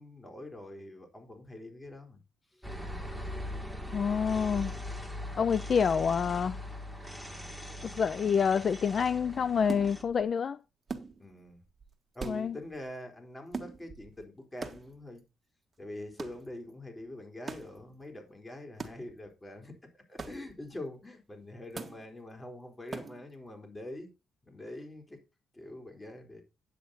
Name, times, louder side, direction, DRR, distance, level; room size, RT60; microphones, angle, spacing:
voice 1, 0.0-2.2 2.5-2.7 11.2-11.6 12.1-15.2 15.8-24.1 24.4-25.2 25.5-26.4, left 1 dB, 20° left, 4.0 m, -45 dB
sound 1, 2.6-10.0, left 1 dB, ahead, 2.6 m, -40 dB
voice 2, 3.9-4.7 5.4-6.6 7.8-10.6 12.3-12.5, left 6 dB, 50° left, 0.5 m, -27 dB
sound 2, 9.7-10.3 10.9-11.5 11.8-11.9 12.1-12.9 13.5-14.2 14.6-15.2 16.2-16.5 17.5-17.9 18.8-19.3 20.2-20.7 21.8-22.1 22.9-23.3, right 4 dB, 30° right, 1.6 m, -42 dB
10.0 x 8.2 x 4.1 m
cardioid pair, 90°, 0 cm